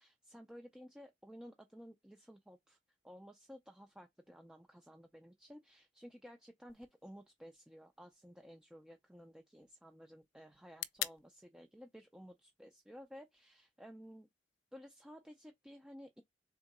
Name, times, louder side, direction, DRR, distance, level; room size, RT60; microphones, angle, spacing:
voice 1, 0.0-2.8 3.0-14.3 14.7-16.2, equal, 5° right, 0.3 m, -55 dB
sound 1, 6.7-14.7, left 14 dB, 85° left, 0.5 m, -50 dB
4.3 x 3.6 x 2.9 m
head